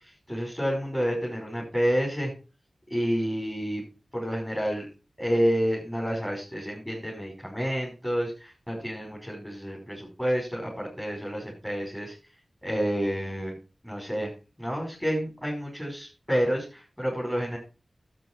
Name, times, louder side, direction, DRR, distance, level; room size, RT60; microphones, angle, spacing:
voice 1, 0.3-2.3 2.9-3.8 4.1-4.8 5.2-12.1 12.6-13.5 13.8-14.3 14.6-17.6, equal, 10° left, -3 dB, 5.7 m, -29 dB
12.0 x 8.6 x 4.8 m, 0.32 s
wide cardioid pair, 75°, 0 cm